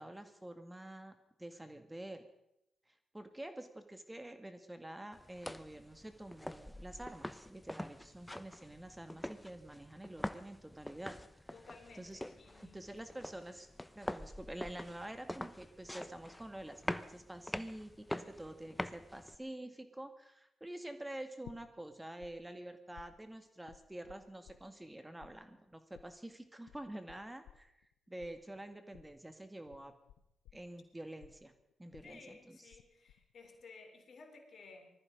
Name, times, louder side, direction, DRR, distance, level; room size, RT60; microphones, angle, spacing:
voice 1, 0.0-2.3 2.9-11.2 11.9-12.2 12.6-13.7 14.0-29.9 30.5-31.5 31.8-32.6, right 1 dB, 15° right, 8 dB, 1.9 m, -48 dB
sound 1, 5.1-19.3, left 1 dB, 10° left, 1.0 m, -45 dB
voice 2, 11.5-13.1 32.0-34.9, left 4 dB, 60° left, 5 dB, 3.5 m, -56 dB
sound 2, 21.4-22.3 22.6-24.9 25.2-32.8 33.1-33.6, left 12 dB, 85° left, 0.7 m, -58 dB
20.0 x 14.0 x 5.3 m, 0.82 s
hypercardioid pair, 45°, 0 cm